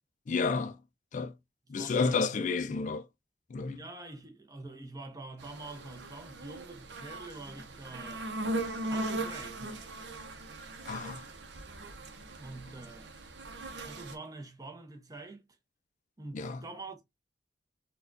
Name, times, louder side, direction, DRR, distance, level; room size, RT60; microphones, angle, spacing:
voice 1, 0.3-0.8 1.1-1.3 1.7-3.1 3.5-3.8 10.9-11.3 16.3-16.6, left 4 dB, 45° left, 0.4 m, -31 dB
voice 2, 1.7-2.4 3.7-8.4 8.9-9.9 12.3-13.1 13.8-15.5 16.2-17.0, right 2 dB, 20° right, 0.8 m, -46 dB
sound 1, 5.4-14.1, right 2 dB, 90° right, 0.7 m, -39 dB
4.1 x 2.3 x 2.5 m
head